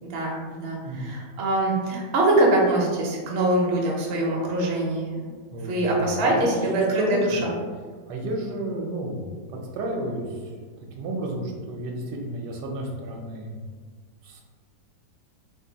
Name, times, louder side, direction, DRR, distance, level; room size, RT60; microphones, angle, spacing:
voice 1, 0.0-5.2 5.6-7.6, right 2 dB, 55° right, -2 dB, 0.8 m, -23 dB
voice 2, 5.5-5.9 6.2-6.5 7.0-7.3 8.1-9.2 9.5-10.3 11.0-13.6 14.2-14.4, right 1 dB, 75° right, 0 dB, 1.2 m, -32 dB
2.9 x 2.6 x 3.9 m, 1.5 s
omnidirectional pair, 1.9 m